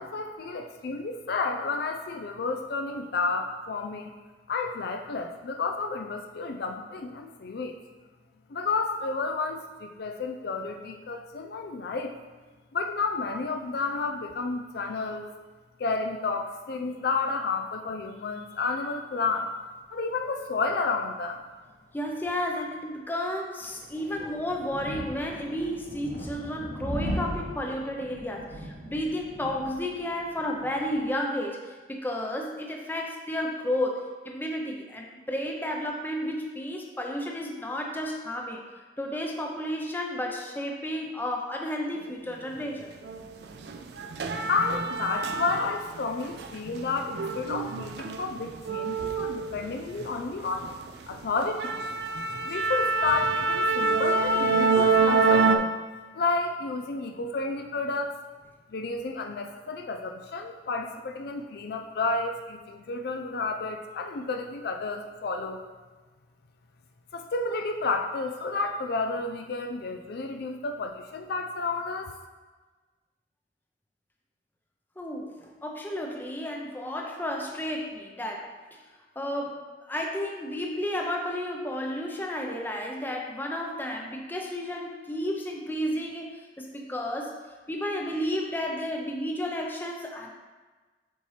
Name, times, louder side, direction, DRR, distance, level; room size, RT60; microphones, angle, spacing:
voice 1, 0.0-4.1 4.5-7.7 8.5-12.2 12.7-15.3 15.8-19.5 19.9-21.4 44.5-50.7 51.1-51.8 52.5-55.7 56.1-58.2 58.7-65.6 67.1-72.1, left 3 dB, 60° left, 4 dB, 0.4 m, -31 dB
voice 2, 21.9-38.6 39.0-42.9 75.0-78.5 79.2-87.4 87.7-90.4, left 1 dB, 10° left, 0 dB, 0.6 m, -32 dB
sound 1, 23.6-31.1, equal, 90° right, 1.4 m, -38 dB
sound 2, 43.0-43.2 43.6-46.0 46.3-50.1 50.5-50.7 51.1-51.2 51.6-55.6, right 4 dB, 65° right, 0.4 m, -26 dB
6.9 x 4.2 x 3.2 m, 1.3 s
head